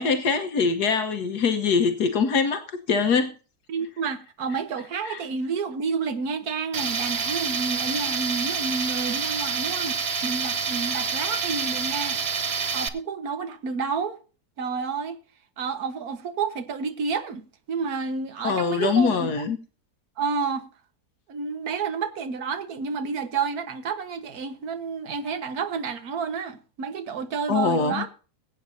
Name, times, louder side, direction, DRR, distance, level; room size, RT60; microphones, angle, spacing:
voice 1, 0.0-3.3 5.0-5.2 18.4-19.6 27.5-28.0, left 5 dB, 75° left, 1.6 m, -23 dB
voice 2, 3.7-12.2 12.7-14.2 14.6-15.2 15.6-19.3 20.2-20.7 21.3-28.1, right 5 dB, 70° right, 1.7 m, -30 dB
Tools, 6.7-12.9, right 5 dB, 50° right, 0.9 m, -28 dB
22.0 x 8.8 x 2.7 m
omnidirectional pair, 1.7 m